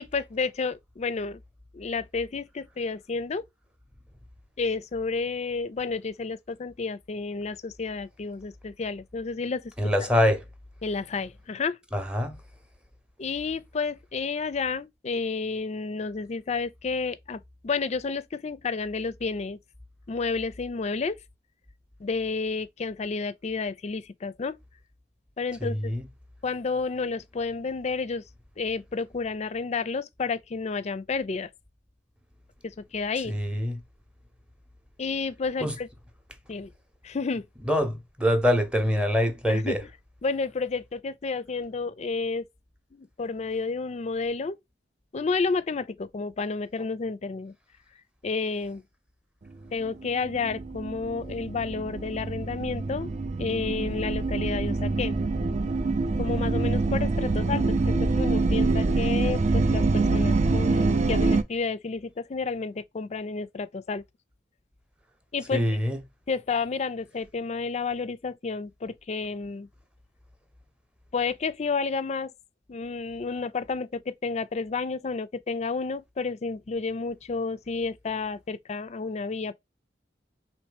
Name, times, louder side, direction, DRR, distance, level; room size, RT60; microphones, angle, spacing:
voice 1, 0.0-1.4 1.7-3.4 4.6-9.7 10.8-11.8 13.2-19.6 20.1-21.2 22.0-24.6 25.4-25.9 26.4-28.2 28.6-31.5 32.6-33.3 35.0-35.9 36.5-36.7 37.0-37.4 39.5-39.8 40.2-42.4 42.9-44.6 45.1-47.5 48.2-48.8 49.7-53.1 53.4-55.2 56.2-64.0 65.3-65.8 66.3-69.7 71.1-72.3 72.7-79.5, left 4 dB, 40° left, 0.4 m, -31 dB
voice 2, 9.8-10.4 11.9-12.4 25.6-26.0 33.2-33.8 35.6-35.7 37.7-39.8 65.5-66.0, equal, 5° right, 0.8 m, -24 dB
sound 1, 49.9-61.4, right 3 dB, 40° right, 0.5 m, -25 dB
4.2 x 3.1 x 3.3 m
head